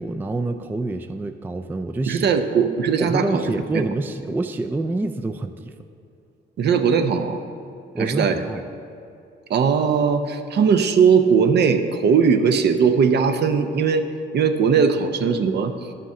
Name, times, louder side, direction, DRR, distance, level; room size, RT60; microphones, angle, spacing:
voice 1, 0.0-2.3 2.6-2.7 3.0-5.7 7.9-8.6, right 2 dB, 10° right, 8 dB, 0.3 m, -27 dB
voice 2, 2.1-3.8 6.6-7.4 8.0-8.4 9.5-14.0 14.3-15.7, right 6 dB, 55° right, 7 dB, 0.7 m, -19 dB
11.0 x 6.8 x 3.6 m, 2.6 s
cardioid pair, 90°, 20 cm